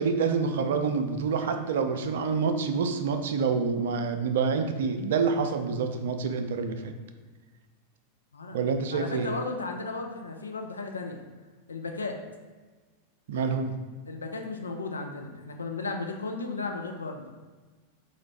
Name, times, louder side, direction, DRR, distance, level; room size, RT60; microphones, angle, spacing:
voice 1, 0.0-6.9 8.5-9.3 13.3-13.7, right 5 dB, 60° right, 7 dB, 0.3 m, -27 dB
voice 2, 8.9-11.2 11.7-12.2 14.1-17.2, left 3 dB, 75° left, 3 dB, 0.4 m, -35 dB
3.9 x 2.5 x 3.1 m, 1.4 s
figure-of-eight pair, 90°, 0 cm